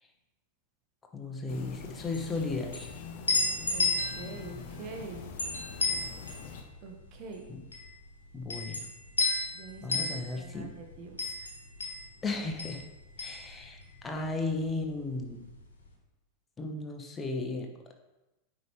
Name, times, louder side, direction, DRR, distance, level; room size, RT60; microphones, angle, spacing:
voice 1, 1.1-2.9 7.5-7.6 8.3-8.9 9.2-9.5 9.8-10.7 12.2-12.8 13.2-15.4 16.6-17.9, left 3 dB, 15° left, 3 dB, 1.1 m, -35 dB
sound 1, 1.5-6.6, left 6 dB, 50° left, 0.8 m, -44 dB
sound 2, 2.1-14.3 14.6-15.7, left 3 dB, 75° left, 1.2 m, -33 dB
voice 2, 3.7-5.3 6.8-7.4 9.5-11.5, right 4 dB, 40° right, 2 dB, 1.3 m, -45 dB
9.3 x 5.1 x 3.2 m, 1.0 s
figure-of-eight pair, 90°, 0 cm